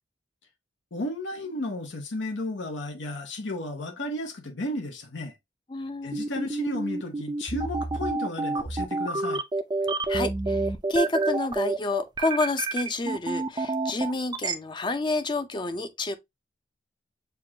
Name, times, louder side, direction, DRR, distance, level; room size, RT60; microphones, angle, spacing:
voice 1, 0.9-5.4 6.0-9.4, left 1 dB, 85° left, 1.0 m, -33 dB
voice 2, 5.7-6.2 10.1-16.2, left 2 dB, 25° left, 0.5 m, -29 dB
sound 1, 6.1-14.5, right 3 dB, 25° right, 0.4 m, -28 dB
6.8 x 2.5 x 2.8 m
head